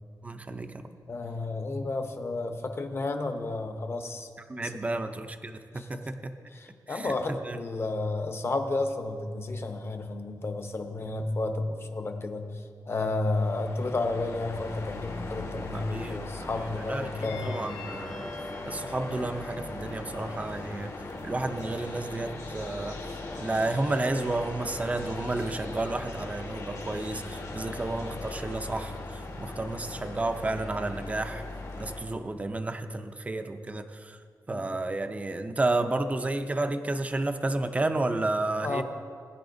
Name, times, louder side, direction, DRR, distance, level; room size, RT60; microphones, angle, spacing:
voice 1, 0.2-0.8 4.5-6.3 6.9-7.1 7.4-7.6 15.7-18.3 18.7-20.9 21.2-31.4 31.8-34.2 34.5-38.8, right 2 dB, 20° right, 8 dB, 0.5 m, -31 dB
voice 2, 1.1-4.3 4.6-5.0 5.7-5.9 6.5-17.5 34.5-34.6 38.6-38.8, left 2 dB, 35° left, 5 dB, 0.8 m, -32 dB
sound 1, 13.2-32.0, left 2 dB, 60° left, 1.7 m, -39 dB
20.5 x 10.0 x 2.6 m, 2.1 s
wide cardioid pair, 150°, 7 cm